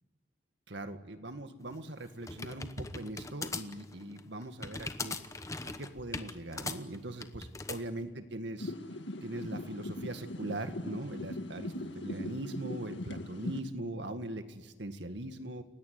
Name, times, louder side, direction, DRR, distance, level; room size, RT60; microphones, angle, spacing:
voice 1, 0.7-5.2 5.8-8.7 9.2-15.6, right 1 dB, 75° right, 8 dB, 2.0 m, -41 dB
clavier mécanique, 1.7-7.8, left 3 dB, 15° left, 1.0 m, -40 dB
sound 1, 8.6-13.6, left 1 dB, 80° left, 1.8 m, -40 dB
29.5 x 17.5 x 9.6 m, 1.3 s
head